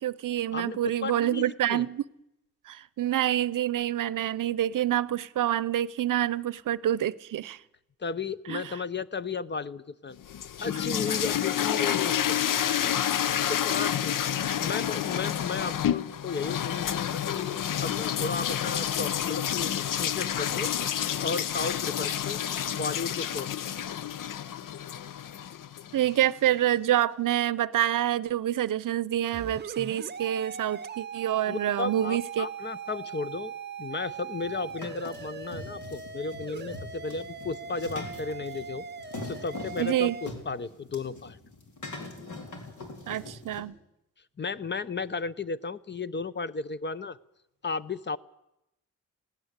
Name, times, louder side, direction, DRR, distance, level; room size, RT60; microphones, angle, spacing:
voice 1, 0.0-2.0 2.7-7.6 8.5-8.6 13.4-13.5 25.9-32.5 39.8-40.2 43.1-43.7, right 12 dB, 80° right, 0.7 m, -27 dB
voice 2, 0.5-1.9 8.0-10.2 10.6-12.4 13.5-14.2 14.6-17.5 17.8-20.7 21.2-22.4 22.7-23.5 31.5-33.5 33.8-38.8 39.2-41.4 44.4-47.2 47.6-48.2, left 4 dB, 35° left, 0.8 m, -34 dB
sound 1, 10.2-26.2, left 10 dB, 85° left, 0.8 m, -29 dB
sound 2, 29.3-40.3, right 6 dB, 35° right, 0.7 m, -40 dB
sound 3, 34.4-43.6, left 2 dB, 70° left, 4.2 m, -42 dB
19.5 x 17.5 x 8.1 m
cardioid pair, 100°, 31 cm